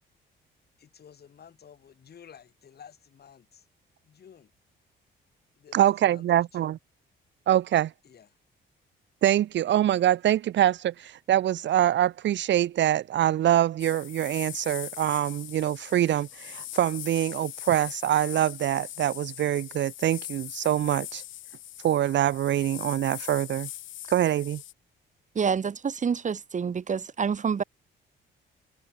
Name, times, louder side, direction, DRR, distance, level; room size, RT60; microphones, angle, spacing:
voice 1, 0.8-3.7 4.0-4.5 5.6-6.8 8.0-8.3, left 8 dB, 55° left, 6.2 m, -52 dB
voice 2, 5.7-6.8 7.5-7.9 9.2-21.2 21.8-23.7 24.1-24.6, right 12 dB, 65° right, 0.9 m, -24 dB
sound 1, 13.8-24.7, left 13 dB, 80° left, 1.9 m, -41 dB
voice 3, 25.3-27.6, right 6 dB, 40° right, 1.2 m, -27 dB
cardioid pair, 90°, 20 cm